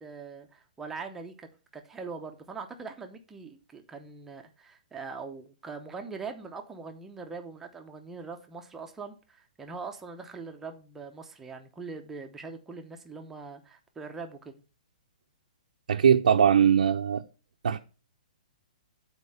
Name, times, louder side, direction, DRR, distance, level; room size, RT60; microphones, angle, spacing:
voice 1, 0.0-14.6, right 4 dB, 5° right, 0.7 m, -42 dB
voice 2, 15.9-17.2 17.6-17.8, right 8 dB, 80° right, 0.7 m, -21 dB
8.2 x 4.4 x 5.6 m
hypercardioid pair, 170°, 4 cm